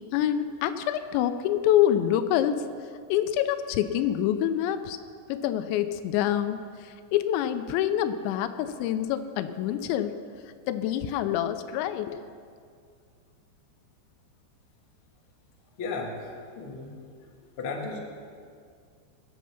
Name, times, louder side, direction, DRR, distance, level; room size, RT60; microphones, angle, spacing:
voice 1, 0.1-2.6 3.1-5.0 5.3-6.6 7.1-10.1 10.7-12.2, left 11 dB, 85° left, 10 dB, 2.9 m, -26 dB
voice 2, 15.8-16.1 16.5-16.9 17.6-18.0, left 4 dB, 60° left, 0 dB, 1.3 m, -33 dB
21.5 x 7.5 x 5.7 m, 2.2 s
omnidirectional pair, 5.2 m